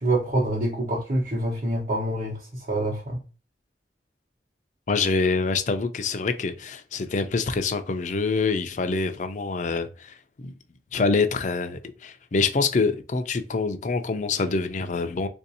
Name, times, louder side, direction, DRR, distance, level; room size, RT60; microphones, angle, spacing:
voice 1, 0.0-2.4 2.7-3.2, right 1 dB, 45° right, 1.0 m, -26 dB
voice 2, 4.9-10.5 10.9-15.3, left 4 dB, 45° left, 0.5 m, -26 dB
3.9 x 2.6 x 2.7 m
head